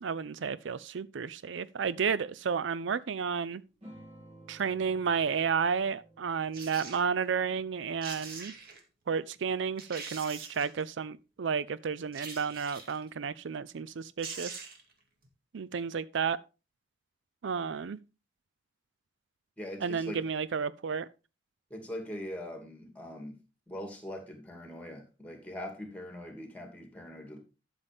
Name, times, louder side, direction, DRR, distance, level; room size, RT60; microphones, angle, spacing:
voice 1, 0.0-3.6 4.5-8.5 9.1-14.5 15.5-16.4 17.4-18.0 19.8-21.1, right 6 dB, 75° right, 0.5 m, -32 dB
sound 1, 3.8-8.7, right 1 dB, 35° right, 3.5 m, -55 dB
sound 2, 6.5-7.0 7.7-7.8 8.0-8.8 9.4-9.5 9.8-10.8 12.1-13.0 13.9-14.0 14.2-14.9 15.2-15.3, right 5 dB, 50° right, 2.2 m, -43 dB
voice 2, 19.6-20.3 21.7-23.4 23.7-27.4, left 1 dB, 10° left, 2.4 m, -42 dB
12.0 x 7.0 x 3.5 m
head